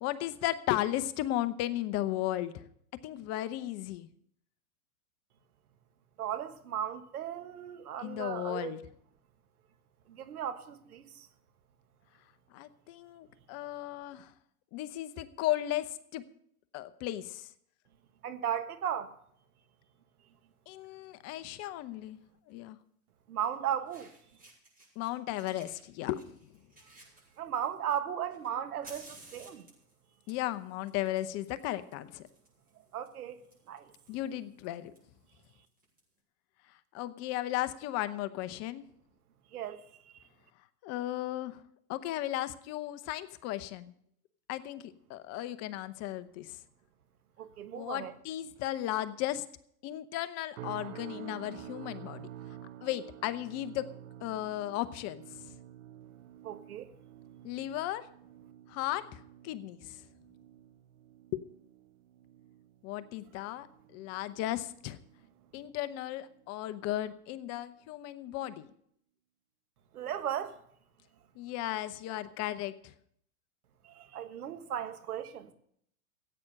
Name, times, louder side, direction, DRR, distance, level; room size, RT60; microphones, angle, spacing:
voice 1, 0.0-2.7 3.0-4.1 8.0-8.8 12.5-14.3 14.7-16.3 16.7-17.5 20.7-22.2 22.5-22.8 25.0-26.4 30.3-32.2 34.1-34.9 36.9-38.8 40.8-41.6 41.9-43.9 44.5-46.6 47.7-49.4 49.8-52.3 52.8-53.9 54.2-55.5 57.4-58.1 58.7-60.0 61.3-61.4 62.8-63.7 63.9-65.0 65.5-68.7 71.4-72.9, left 14 dB, 35° left, 0.8 m, -35 dB
voice 2, 6.2-8.8 10.1-11.3 18.2-19.1 23.3-24.1 27.4-29.6 32.9-33.4 33.7-33.9 39.5-39.8 47.4-48.1 56.4-56.9 69.9-70.6 73.8-75.5, right 9 dB, 75° right, 1.6 m, -36 dB
Fire, 20.8-21.0 22.5-22.6 23.5-23.6 23.8-25.1 25.3-27.8 28.3-36.0, right 2 dB, 20° right, 6.9 m, -57 dB
sound 1, 50.6-65.8 66.1-66.5 67.0-67.2, right 11 dB, 60° right, 0.9 m, -50 dB
15.5 x 8.9 x 6.5 m
hypercardioid pair, 115°, 44 cm